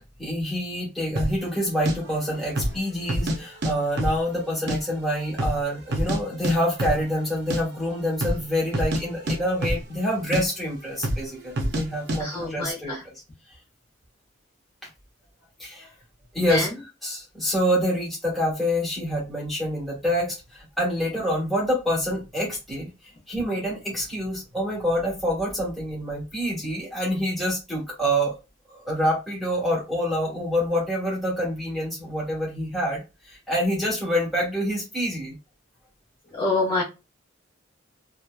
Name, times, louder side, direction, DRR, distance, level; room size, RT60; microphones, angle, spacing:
voice 1, 0.0-13.0 15.6-15.9 16.3-16.7 17.0-22.9 23.3-28.3 28.7-33.0 33.3-35.3, equal, ahead, -5 dB, 1.2 m, -26 dB
sound 1, 1.2-1.4 1.9-2.0 2.5-2.8 3.1-3.7 4.0-4.8 5.0-5.1 5.4-6.2 6.4-6.5 6.8-7.0 7.3-7.6 8.1-8.4 8.7-10.1 10.3-10.4 11.0-11.3 11.6-11.8 12.1-12.2, equal, 55° right, 0.5 m, -26 dB
voice 2, 12.2-13.0 16.5-16.7 36.4-36.8, left 2 dB, 25° left, -7 dB, 0.8 m, -26 dB
2.9 x 2.2 x 2.2 m, 0.27 s
head